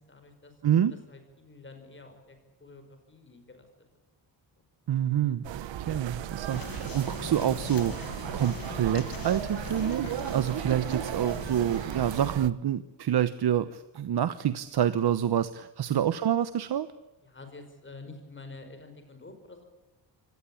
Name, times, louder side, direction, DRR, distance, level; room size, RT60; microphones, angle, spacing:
voice 1, 0.0-0.5 0.9-3.7 4.6-4.7 15.9-16.0 17.2-19.6, left 3 dB, 25° left, 7 dB, 5.2 m, -48 dB
voice 2, 0.6-0.9 4.9-5.4 5.8-7.9 8.3-16.9, right 10 dB, 60° right, 13 dB, 1.1 m, -27 dB
sound 1, 5.4-12.5, right 12 dB, 85° right, 1.1 m, -36 dB
sound 2, 6.5-12.3, left 8 dB, 50° left, 1.5 m, -42 dB
25.0 x 18.5 x 8.6 m, 1.1 s
wide cardioid pair, 130°, 43 cm